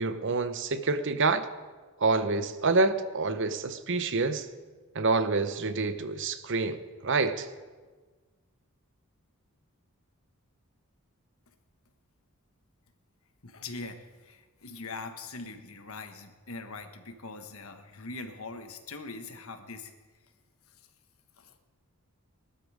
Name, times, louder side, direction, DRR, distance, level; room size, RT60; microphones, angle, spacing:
voice 1, 0.0-1.5 2.0-4.5 4.9-6.8 7.0-7.5, right 3 dB, 55° right, 0.9 m, -27 dB
voice 2, 13.4-19.9 21.4-21.5, left 3 dB, 70° left, 1.4 m, -42 dB
20.0 x 12.5 x 5.0 m
head